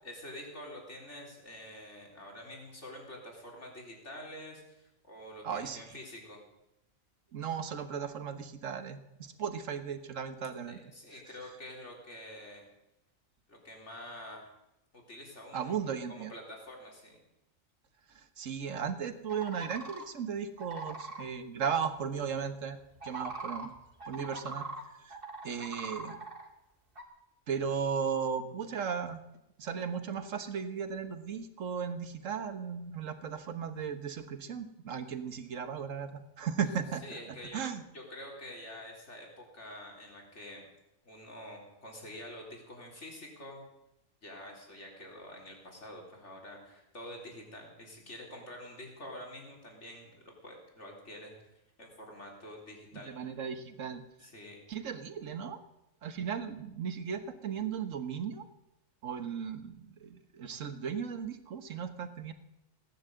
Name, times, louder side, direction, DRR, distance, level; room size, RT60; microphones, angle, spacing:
voice 1, 0.0-6.4 10.7-12.6 13.5-14.5 14.9-17.2 25.5-26.0 37.0-37.6 37.9-40.7 41.0-43.6 44.2-51.3 51.8-53.3 54.2-54.6, left 1 dB, 60° left, 0 dB, 4.1 m, -47 dB
voice 2, 5.4-5.8 7.3-10.8 15.5-16.3 18.1-22.8 23.0-23.7 24.1-24.7 25.0-25.2 25.4-26.1 27.5-29.2 29.6-37.8 52.9-54.0 54.7-55.6 56.0-58.5 59.0-62.3, right 7 dB, 75° right, 10 dB, 1.6 m, -36 dB
sound 1, 19.3-20.0 20.6-21.2 22.9-24.8 25.1-26.4 26.9-27.0, right 3 dB, 45° right, 2.5 m, -41 dB
17.5 x 10.5 x 7.8 m, 0.89 s
omnidirectional pair, 1.4 m